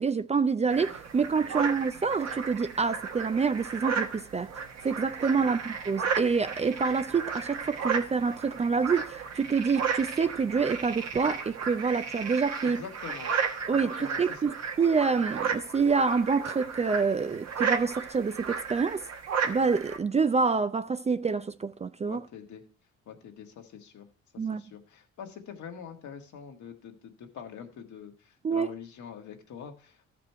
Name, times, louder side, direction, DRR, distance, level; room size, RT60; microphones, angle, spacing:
voice 1, 0.0-4.5 4.8-12.8 13.7-19.0 19.4-22.2 24.4-24.6 28.4-28.7, right 5 dB, 20° right, 0.4 m, -27 dB
sound 1, 0.7-20.0, right 6 dB, 60° right, 1.4 m, -34 dB
voice 2, 12.6-13.3 13.7-14.4 22.0-22.6 23.1-24.1 24.3-30.1, left 7 dB, 70° left, 1.6 m, -45 dB
13.5 x 5.0 x 4.5 m
cardioid pair, 90°, 30 cm